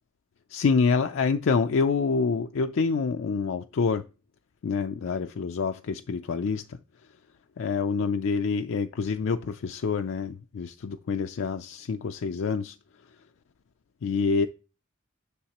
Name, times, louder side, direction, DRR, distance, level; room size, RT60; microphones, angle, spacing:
voice 1, 0.5-4.1 4.6-6.6 7.6-12.8 14.0-14.5, left 5 dB, 70° left, 0.4 m, -26 dB
9.9 x 6.4 x 2.9 m
head